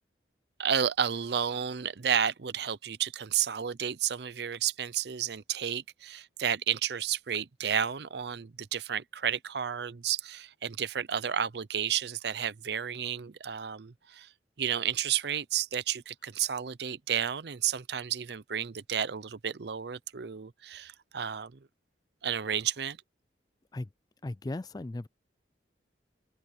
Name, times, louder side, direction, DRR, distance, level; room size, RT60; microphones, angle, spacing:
voice 1, 0.6-14.3 14.6-21.6 22.2-23.0, right 8 dB, 65° right, 0.6 m, -32 dB
voice 2, 24.2-25.1, left 2 dB, 20° left, 0.4 m, -36 dB
open air
head